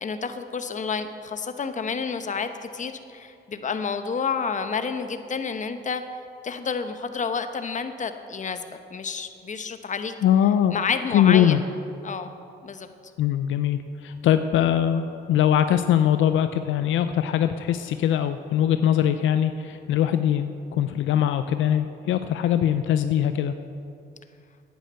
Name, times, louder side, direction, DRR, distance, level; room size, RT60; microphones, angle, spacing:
voice 1, 0.0-6.0 6.4-10.1 10.7-11.6 12.0-12.3 12.6-12.9, left 5 dB, 40° left, 9 dB, 1.0 m, -30 dB
voice 2, 10.2-10.7 11.1-11.6 13.2-23.5, left 10 dB, 75° left, 10 dB, 0.5 m, -22 dB
10.5 x 9.3 x 8.1 m, 2.6 s
cardioid pair, 90°, 20 cm